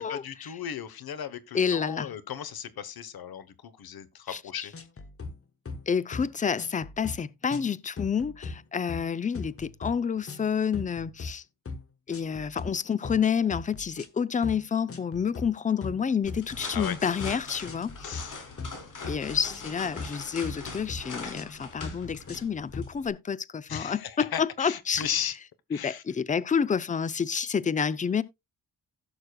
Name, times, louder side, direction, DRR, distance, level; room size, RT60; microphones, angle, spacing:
voice 1, 0.0-4.7 16.7-17.0 18.0-18.4 23.7-25.4 25.7-26.0, left 9 dB, 70° left, 1.1 m, -36 dB
voice 2, 1.5-2.1 4.3-4.4 5.9-11.4 12.1-18.2 19.1-25.0 25.7-28.2, left 7 dB, 20° left, 0.4 m, -29 dB
sound 1, 4.7-5.4 5.7-5.9 6.1-6.3 6.6-7.2 7.5-7.7 8.0-8.6 8.9-9.1 9.3-10.0 10.3-10.5 10.7-11.3 11.7-11.8 12.1-12.7 13.0-13.2 13.5-14.1 14.4-14.6 14.9-15.5 15.8-16.9 17.2-17.4 17.7-18.2 18.6-18.8 19.0-20.2 20.4-21.0 21.3-21.5 21.8-22.5 22.7-22.9, left 3 dB, 35° left, 1.3 m, -39 dB
sound 2, 16.2-23.1, left 4 dB, 55° left, 3.0 m, -42 dB
16.5 x 6.3 x 2.3 m
wide cardioid pair, 130°, 38 cm